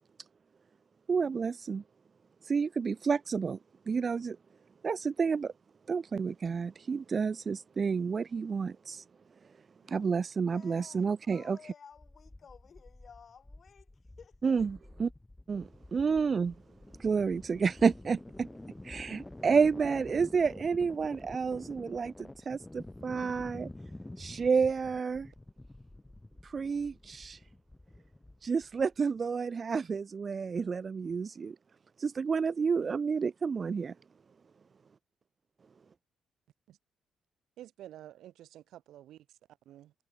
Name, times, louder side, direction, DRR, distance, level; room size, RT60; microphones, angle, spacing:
voice 1, 1.1-1.8 2.4-3.6 3.9-4.4 4.8-5.5 5.9-9.0 9.9-11.6 14.4-15.1 15.5-16.5 17.0-18.5 18.8-23.7 24.2-25.3 26.4-27.4 28.4-31.6 32.0-33.9, right 5 dB, 40° right, 0.7 m, -30 dB
voice 2, 9.8-10.2 10.5-13.9 14.2-14.3, left 6 dB, 45° left, 4.1 m, -54 dB
sound 1, 11.9-29.0, left 2 dB, 10° left, 3.2 m, -49 dB
voice 3, 37.6-39.4 39.7-39.9, right 12 dB, 80° right, 4.0 m, -50 dB
cardioid pair, 90°, 0 cm